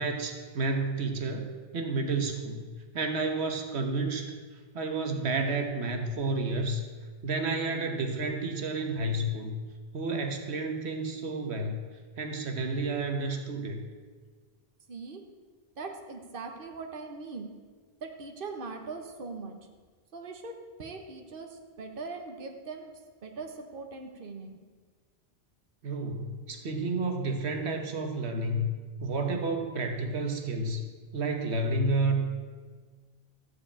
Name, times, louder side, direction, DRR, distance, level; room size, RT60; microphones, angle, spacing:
voice 1, 0.0-4.3 4.7-6.8 7.2-9.5 9.9-11.8 12.2-13.8 25.8-28.7 29.0-30.8 31.1-32.2, right 2 dB, 85° right, 5 dB, 1.4 m, -30 dB
voice 2, 14.9-15.2 15.8-17.5 18.0-19.6 20.1-24.6, right 4 dB, 60° right, 4 dB, 1.3 m, -41 dB
14.0 x 4.8 x 8.6 m, 1.5 s
omnidirectional pair, 1.1 m